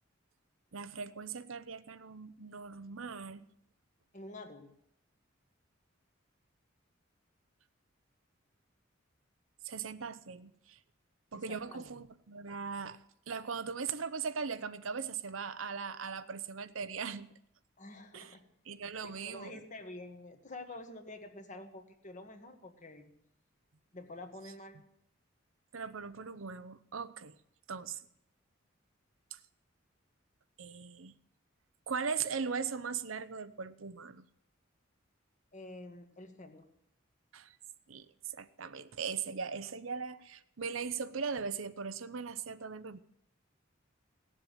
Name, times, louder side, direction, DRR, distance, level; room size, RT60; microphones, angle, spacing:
voice 1, 0.7-3.5 9.6-10.8 11.3-13.0 13.3-17.3 18.1-18.3 18.7-19.5 25.7-27.4 27.7-28.0 29.3-29.4 30.6-31.1 31.9-34.2 37.3-37.6 37.9-38.1 38.3-43.0, right 5 dB, 85° right, 13 dB, 0.8 m, -39 dB
voice 2, 4.1-4.7 11.3-12.0 17.8-18.4 19.0-23.1 23.9-24.9 35.5-36.6, left 2 dB, 40° left, 6 dB, 1.6 m, -48 dB
17.5 x 7.5 x 9.2 m, 0.76 s
head